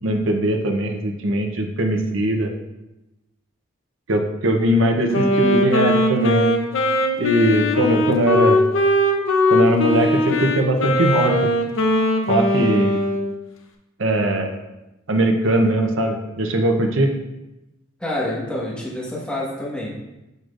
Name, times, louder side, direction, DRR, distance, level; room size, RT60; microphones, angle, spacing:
voice 1, 0.0-2.5 4.1-6.5 7.2-8.6 9.5-11.3 12.3-13.0 14.0-14.6 15.1-17.1, right 1 dB, 85° right, 3 dB, 0.8 m, -20 dB
Wind instrument woodwind instrument, 5.1-13.3, left 1 dB, 80° left, 0.8 m, -20 dB
voice 2, 18.0-19.9, left 1 dB, 5° left, -6 dB, 1.5 m, -27 dB
6.6 x 6.2 x 2.5 m, 0.97 s
head